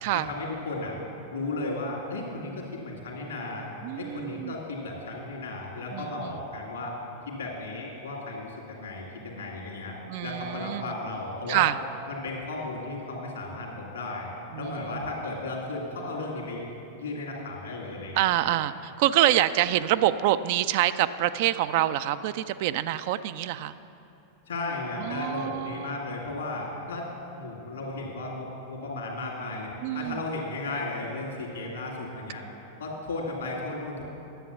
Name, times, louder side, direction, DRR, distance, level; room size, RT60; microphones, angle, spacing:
voice 1, 0.1-1.0 1.3-3.7 4.0-6.9 7.3-10.0 10.2-11.7 12.1-14.3 14.6-16.7 17.0-18.4 24.5-27.1 27.3-32.4 32.8-34.0, left 2 dB, 70° left, -1 dB, 2.3 m, -35 dB
voice 2, 3.8-4.6 5.9-6.3 10.1-10.9 11.5-11.7 14.5-15.0 18.1-23.7 25.0-26.0 29.8-30.2, right 13 dB, 50° right, 13 dB, 0.3 m, -26 dB
10.5 x 7.7 x 6.9 m, 2.8 s
figure-of-eight pair, 90°, 0 cm